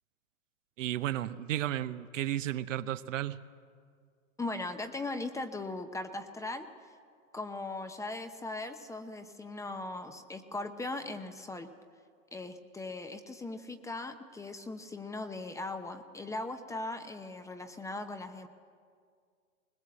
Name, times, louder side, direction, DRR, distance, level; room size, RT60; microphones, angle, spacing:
voice 1, 0.8-3.4, right 12 dB, 65° right, 11 dB, 1.0 m, -33 dB
voice 2, 4.4-6.7 7.3-11.7 12.3-18.5, left 2 dB, 5° left, 8 dB, 0.8 m, -39 dB
20.5 x 20.5 x 7.6 m, 2.1 s
hypercardioid pair, 120°, 41 cm